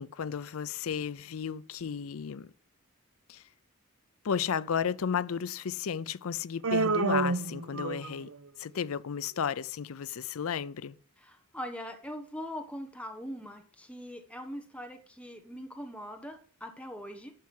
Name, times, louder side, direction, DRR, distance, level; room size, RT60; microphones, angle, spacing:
voice 1, 0.0-2.5 3.3-3.4 4.2-8.3 8.6-11.0, left 7 dB, 75° left, 0.5 m, -33 dB
Human voice, 6.6-8.3, right 3 dB, 75° right, 0.9 m, -29 dB
voice 2, 11.2-17.3, equal, 5° left, 1.1 m, -42 dB
11.5 x 5.8 x 7.7 m
head